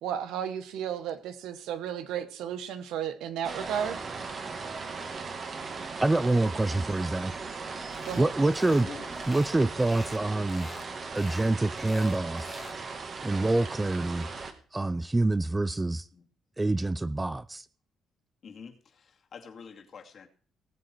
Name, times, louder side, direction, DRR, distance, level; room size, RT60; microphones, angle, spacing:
voice 1, 0.0-4.0 8.0-8.3, right 9 dB, 90° right, 1.3 m, -33 dB
sound 1, 3.4-14.5, right 4 dB, 45° right, 2.1 m, -38 dB
sound 2, 3.5-6.7 7.5-9.0, right 7 dB, 65° right, 2.3 m, -53 dB
voice 2, 6.0-7.3 7.6-7.8 8.1-8.9 9.3-10.7 11.1-12.6 13.2-14.3 14.7-16.1 16.6-17.6, right 2 dB, 15° right, 0.6 m, -26 dB
sound 3, 7.9-8.3 8.5-8.9 9.1-10.2 10.5-10.9 11.2-12.8, left 3 dB, 20° left, 1.4 m, -46 dB
voice 3, 8.6-9.1 16.1-16.2 18.4-20.3, left 6 dB, 55° left, 2.4 m, -46 dB
18.5 x 8.0 x 4.7 m
cardioid pair, 90°, 0 cm